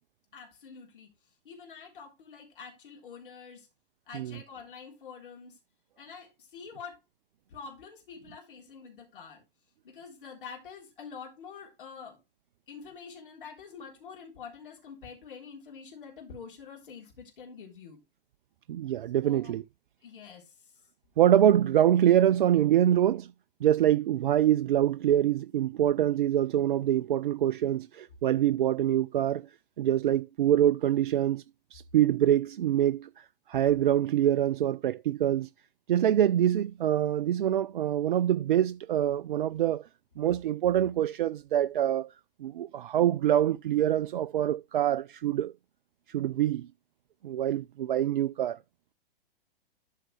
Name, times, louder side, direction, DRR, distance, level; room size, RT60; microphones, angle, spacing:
voice 1, 0.3-1.1 1.4-3.7 4.1-5.6 6.0-7.0 7.5-9.4 9.8-12.2 12.7-18.0 19.2-19.5 20.0-20.7, left 6 dB, 60° left, 3.8 m, -46 dB
voice 2, 18.7-19.6 21.2-23.3 23.6-29.5 29.8-31.4 31.7-35.5 35.9-39.9 40.2-42.1 42.4-45.5 46.1-46.7 47.2-48.6, right 11 dB, 60° right, 0.4 m, -25 dB
12.5 x 5.6 x 3.3 m
figure-of-eight pair, 105°, 30 cm